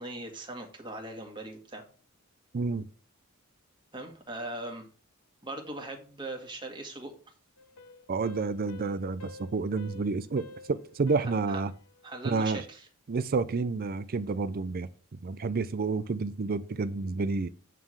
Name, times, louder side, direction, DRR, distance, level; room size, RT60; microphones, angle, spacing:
voice 1, 0.0-1.8 3.9-4.9 5.4-7.1 11.5-11.6 12.0-12.8, right 2 dB, 20° right, 1.8 m, -40 dB
voice 2, 2.5-2.9 8.1-11.7 12.2-12.6 13.1-14.9 15.2-17.5, right 4 dB, 45° right, 0.5 m, -30 dB
sound 1, 7.6-12.5, left 3 dB, 90° left, 0.9 m, -50 dB
9.2 x 3.8 x 6.3 m
head